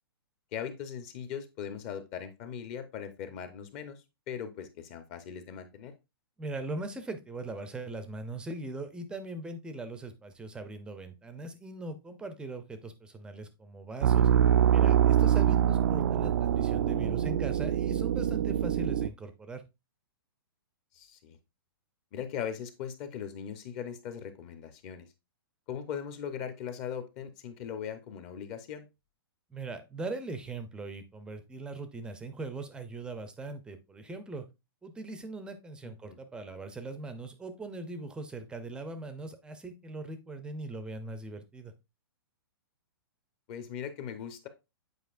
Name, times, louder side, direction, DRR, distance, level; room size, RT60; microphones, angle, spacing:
voice 1, 0.5-5.9 15.2-15.6 20.9-21.4 22.1-25.1 25.7-28.9 35.8-36.2 43.5-44.5, left 8 dB, 35° left, 9 dB, 0.9 m, -39 dB
voice 2, 6.4-14.3 14.7-19.6 29.5-34.4 34.8-41.7, right 2 dB, 5° right, 9 dB, 0.5 m, -40 dB
sound 1, 14.0-19.1, right 9 dB, 60° right, 0.4 m, -24 dB
8.1 x 4.8 x 2.5 m, 0.25 s
hypercardioid pair, 150°, 13 cm